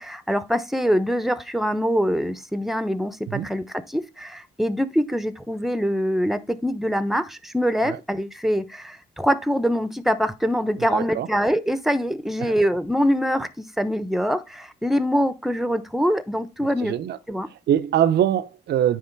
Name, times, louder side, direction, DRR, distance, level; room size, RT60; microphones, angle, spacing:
voice 1, 0.0-17.0 17.3-17.5, equal, ahead, 0.9 m, -24 dB
voice 2, 10.8-11.3 12.4-12.5 16.8-17.2 17.7-19.0, right 10 dB, 75° right, 0.6 m, -23 dB
9.6 x 3.2 x 4.5 m
cardioid pair, 70°, 17 cm